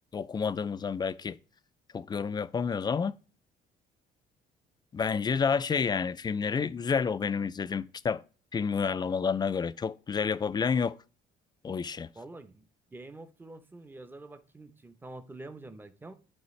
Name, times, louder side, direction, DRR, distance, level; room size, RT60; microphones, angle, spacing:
voice 1, 0.1-1.4 1.9-3.2 4.9-8.2 8.5-10.9 11.6-12.1, left 6 dB, 25° left, 0.4 m, -29 dB
voice 2, 12.1-16.1, right 2 dB, 10° right, 0.7 m, -47 dB
11.0 x 4.0 x 3.2 m
cardioid pair, 110°, 17 cm